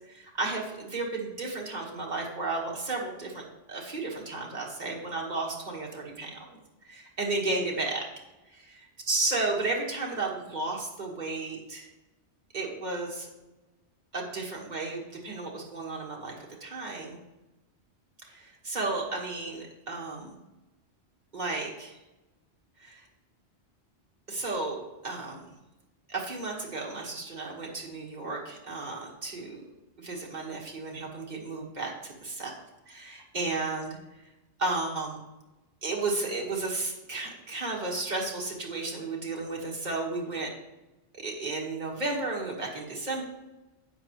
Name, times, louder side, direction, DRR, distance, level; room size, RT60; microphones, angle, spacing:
voice 1, 0.1-3.4 3.7-6.6 6.8-8.1 8.5-8.7 9.1-11.9 12.5-13.3 14.1-16.4 16.6-17.2 18.3-20.4 21.3-22.0 22.8-23.1 24.3-25.5 26.1-29.6 30.0-34.0 34.6-35.2 35.8-40.5 41.1-43.2, right 3 dB, 40° right, -2 dB, 1.9 m, -33 dB
11.5 x 8.0 x 3.2 m, 1.0 s
omnidirectional pair, 1.1 m